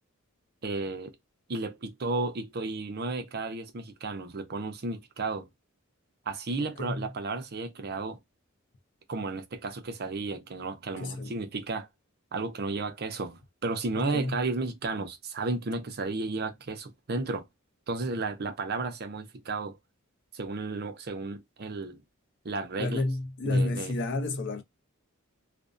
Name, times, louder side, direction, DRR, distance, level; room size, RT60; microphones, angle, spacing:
voice 1, 0.6-1.1 1.5-5.5 6.3-8.2 9.1-11.9 12.3-17.4 17.9-19.8 20.3-22.0 22.4-23.0 23.4-23.9, right 3 dB, 50° right, 0.6 m, -33 dB
voice 2, 6.8-7.1 11.0-11.4 13.9-14.4 22.8-24.6, left 2 dB, 60° left, 0.5 m, -30 dB
2.5 x 2.1 x 2.4 m
head